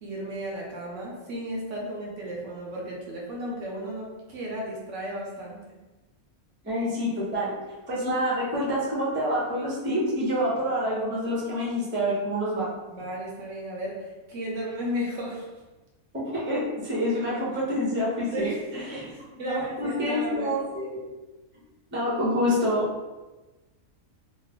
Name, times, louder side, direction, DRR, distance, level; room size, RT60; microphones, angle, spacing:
voice 1, 0.0-5.6 12.9-15.5 17.0-17.4 18.3-18.6 18.9-20.5, equal, 65° right, -3 dB, 0.9 m, -34 dB
voice 2, 6.6-7.5 7.9-12.7 16.1-19.1 19.4-21.0 21.9-22.9, equal, 10° right, -6 dB, 0.6 m, -27 dB
3.1 x 2.1 x 3.4 m, 1.1 s
omnidirectional pair, 1.5 m